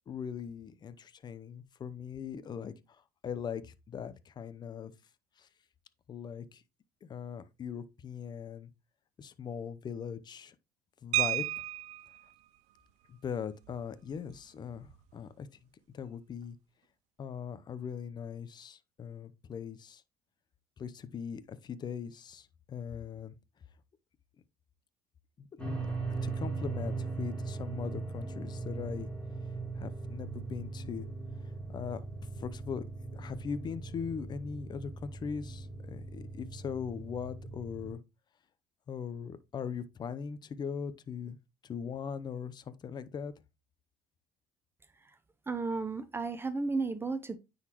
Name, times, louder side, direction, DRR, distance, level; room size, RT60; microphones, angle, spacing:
voice 1, 0.1-4.9 5.4-5.5 6.1-6.6 7.0-8.7 9.2-10.5 11.0-11.5 13.1-15.7 15.9-16.6 17.2-20.0 20.8-23.3 25.4-25.9 26.2-29.1 29.8-31.1 31.7-32.0 32.4-32.9 33.1-38.0 38.9-41.4 41.6-43.3, left 7 dB, 35° left, 0.7 m, -40 dB
sound 1, 11.1-12.2 13.7-13.8 14.1-14.3 14.7-15.0, right 15 dB, 80° right, 0.5 m, -32 dB
sound 2, 25.6-37.9, right 3 dB, 10° left, 3.0 m, -39 dB
voice 2, 45.5-47.4, right 3 dB, 20° right, 0.6 m, -33 dB
9.4 x 4.0 x 3.0 m
supercardioid pair, 95°, 12 cm